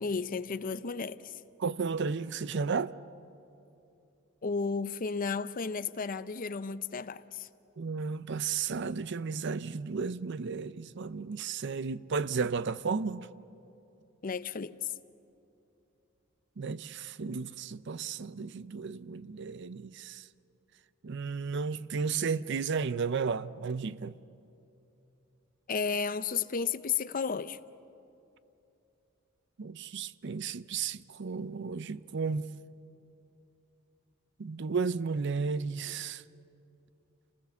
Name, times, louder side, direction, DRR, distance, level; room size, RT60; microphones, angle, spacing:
voice 1, 0.0-1.4 4.4-7.5 14.2-14.8 25.7-27.6, left 5 dB, 40° left, 0.6 m, -33 dB
voice 2, 1.6-2.9 7.8-13.3 16.6-20.2 21.0-24.1 29.6-32.5 34.4-36.2, right 5 dB, 60° right, 0.5 m, -33 dB
28.0 x 19.5 x 7.0 m
head